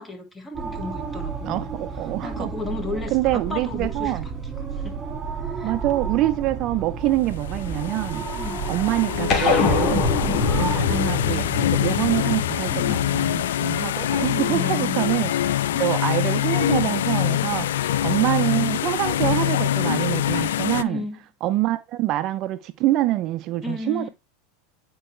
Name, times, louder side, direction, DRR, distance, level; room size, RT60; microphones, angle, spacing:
voice 1, 0.0-1.7 2.2-4.2 4.6-5.0 5.4-5.7 8.3-8.7 10.2-10.6 12.7-13.1 14.4-15.0 15.7-15.9 16.4-16.5 18.5-18.9 20.8-21.2 23.6-24.1, left 3 dB, 10° left, 1.8 m, -34 dB
sound 1, 0.5-10.8, right 5 dB, 25° right, 2.3 m, -31 dB
voice 2, 1.4-2.5 3.1-4.2 5.6-8.3 8.7-10.2 10.6-17.7 18.0-21.0 21.4-24.1, right 15 dB, 50° right, 0.5 m, -25 dB
sound 2, 7.4-20.8, left 11 dB, 80° left, 0.4 m, -24 dB
sound 3, 9.3-14.0, left 5 dB, 35° left, 2.8 m, -25 dB
8.8 x 4.7 x 3.3 m
hypercardioid pair, 100°, 0 cm